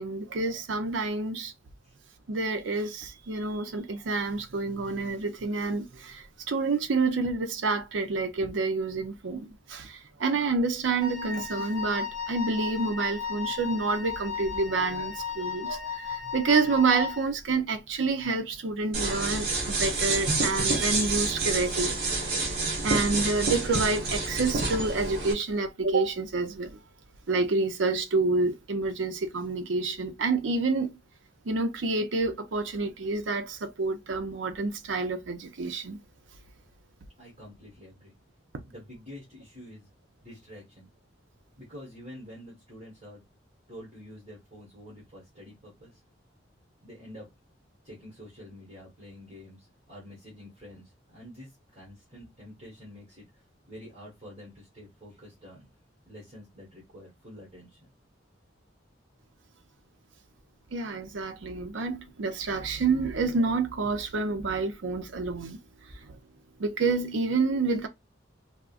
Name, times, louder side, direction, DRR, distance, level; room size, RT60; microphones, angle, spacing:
voice 1, 0.0-1.5 2.3-22.0 22.8-26.7 27.3-31.0 31.5-36.0 60.7-65.6 66.6-67.9, right 3 dB, 75° right, 0.6 m, -28 dB
Wind instrument woodwind instrument, 11.0-17.4, left 6 dB, 20° left, 0.9 m, -35 dB
sound 1, 18.9-25.3, right 3 dB, 55° right, 1.0 m, -28 dB
voice 2, 37.2-38.2 38.6-39.9 40.2-40.9 41.6-43.2 43.7-46.0 46.8-47.3 47.8-53.2 53.7-55.7 56.0-57.8, equal, 35° right, 1.4 m, -47 dB
3.5 x 2.1 x 2.4 m
head